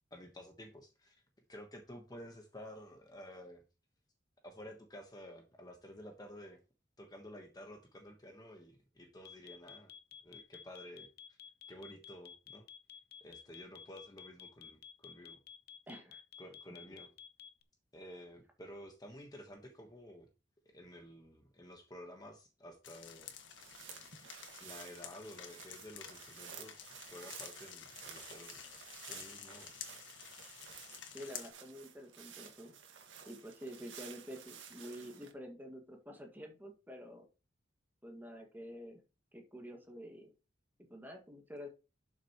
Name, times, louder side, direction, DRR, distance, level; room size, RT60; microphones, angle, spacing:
voice 1, 0.1-1.2 1.5-3.6 4.4-6.6 7.0-9.9 10.2-11.4 11.7-12.7 13.2-15.4 16.4-17.1 17.9-20.3 20.6-23.3 24.6-28.6 29.0-29.8, equal, 20° left, 1.2 m, -52 dB
sound 1, 9.3-17.6, left 8 dB, 55° left, 0.7 m, -52 dB
voice 2, 15.9-16.2 31.1-32.8 33.3-37.3 38.0-39.0 39.3-40.3 40.9-41.7, equal, 10° right, 1.9 m, -48 dB
sound 2, 22.8-31.5, left 8 dB, 75° left, 1.6 m, -51 dB
sound 3, 23.4-35.3, right 8 dB, 80° right, 1.7 m, -53 dB
11.5 x 6.3 x 3.0 m
head